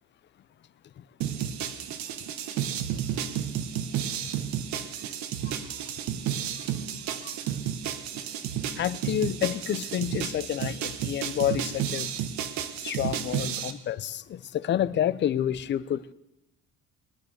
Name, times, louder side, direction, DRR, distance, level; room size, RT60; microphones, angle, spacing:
sound 1, 1.2-13.7, right 9 dB, 75° right, 1.3 m, -32 dB
voice 1, 8.8-12.1 12.8-16.0, left 11 dB, 40° left, 17 dB, 0.6 m, -29 dB
20.0 x 11.0 x 6.6 m, 0.92 s
cardioid pair, 155°, 29 cm